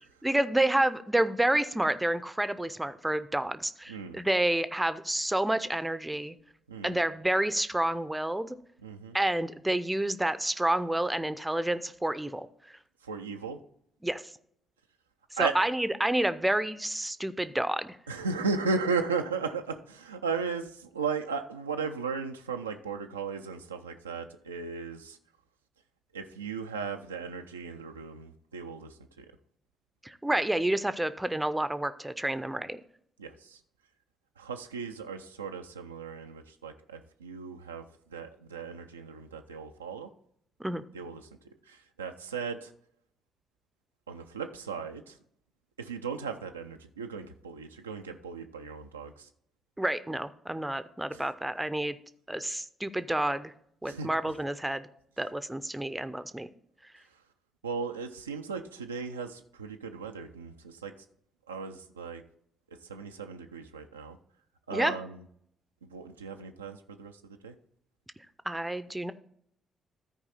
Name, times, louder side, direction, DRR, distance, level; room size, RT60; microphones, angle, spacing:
voice 1, 0.2-6.4 6.8-8.6 9.1-12.8 14.0-14.2 15.4-18.0 30.0-32.8 40.6-40.8 49.8-52.0 52.3-53.5 53.8-54.9 55.2-56.5 64.7-64.9 68.4-69.1, right 1 dB, 10° right, 13 dB, 0.6 m, -29 dB
voice 2, 8.8-9.2 13.0-13.6 15.4-15.5 18.1-25.2 26.1-29.3 33.2-33.6 34.4-37.8 38.1-40.1 40.9-41.3 41.7-42.7 44.1-45.2 45.8-49.3 51.1-51.2 53.9-54.1 57.6-60.9 61.5-62.2 62.8-64.2 64.7-65.2 65.8-67.5, right 5 dB, 85° right, 5 dB, 0.4 m, -36 dB
13.5 x 4.7 x 4.1 m, 0.69 s
figure-of-eight pair, 40°, 0 cm